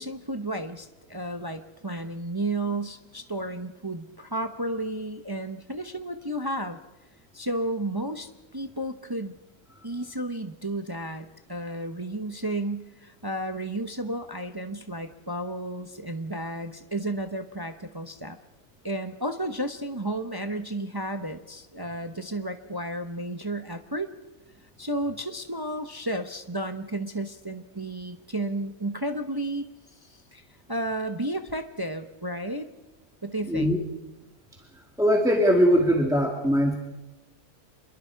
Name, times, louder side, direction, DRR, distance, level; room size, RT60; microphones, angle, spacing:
voice 1, 0.0-6.8 7.3-9.3 9.8-18.4 18.8-24.1 24.8-29.7 30.1-30.4 30.7-32.7 33.2-33.7, right 1 dB, 20° right, 7 dB, 0.8 m, -32 dB
voice 2, 35.0-36.8, equal, ahead, 0 dB, 2.1 m, -21 dB
27.0 x 22.0 x 4.7 m, 1.1 s
omnidirectional pair, 1.6 m